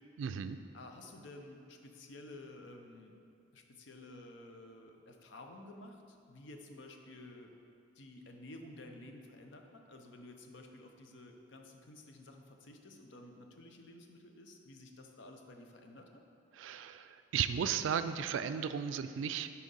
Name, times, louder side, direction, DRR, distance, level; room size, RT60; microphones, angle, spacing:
voice 1, 0.2-0.6 16.5-19.5, right 7 dB, 80° right, 10 dB, 0.3 m, -35 dB
voice 2, 0.7-3.1 3.5-7.5 8.0-16.2, left 2 dB, 70° left, 4 dB, 0.6 m, -52 dB
6.3 x 4.4 x 5.3 m, 2.5 s
head